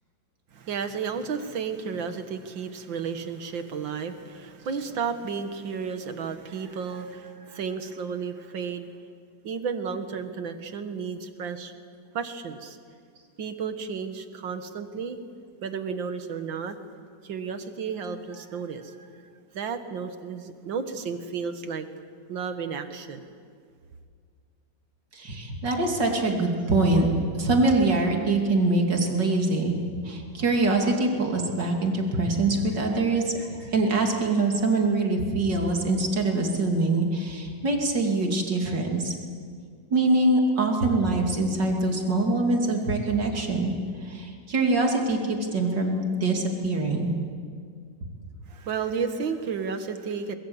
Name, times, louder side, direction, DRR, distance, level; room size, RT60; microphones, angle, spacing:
voice 1, 0.5-8.9 9.4-11.7 12.1-12.8 13.4-15.2 15.6-16.8 17.2-19.1 19.5-21.9 22.3-23.2 48.5-50.3, right 6 dB, 85° right, 8 dB, 2.2 m, -32 dB
voice 2, 25.1-27.1 27.3-29.7 30.0-39.1 39.9-43.7 44.0-47.1, right 2 dB, 70° right, 1 dB, 3.3 m, -24 dB
23.5 x 22.0 x 8.0 m, 2.1 s
omnidirectional pair, 2.0 m